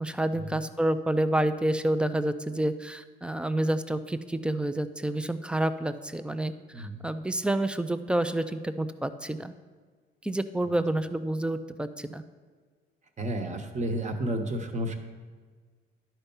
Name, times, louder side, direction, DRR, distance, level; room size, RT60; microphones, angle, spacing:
voice 1, 0.0-9.5 10.2-12.2, right 1 dB, 5° right, 10 dB, 0.4 m, -29 dB
voice 2, 6.7-7.0 10.6-10.7 13.2-15.0, right 1 dB, 35° right, 5 dB, 1.1 m, -32 dB
11.0 x 4.5 x 5.5 m, 1.5 s
cardioid pair, 90°, 20 cm